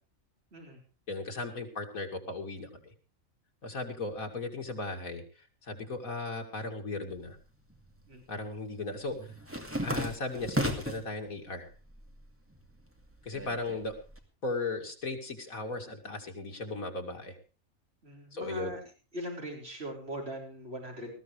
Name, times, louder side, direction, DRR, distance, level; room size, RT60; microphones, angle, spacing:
voice 1, 0.5-0.8 8.1-8.3 18.0-18.8 19.1-21.2, equal, 45° right, 0 dB, 5.1 m, -40 dB
voice 2, 1.1-2.9 3.6-7.4 8.3-9.3 9.8-11.7 13.2-13.9 14.4-17.4 18.3-18.7, left 3 dB, 90° left, 3 dB, 3.0 m, -37 dB
sound 1, 7.2-8.0 8.3-11.1 11.6-12.2 12.5-14.2, equal, 10° right, 2.4 m, -35 dB
20.5 x 14.0 x 3.3 m, 0.35 s
omnidirectional pair, 1.4 m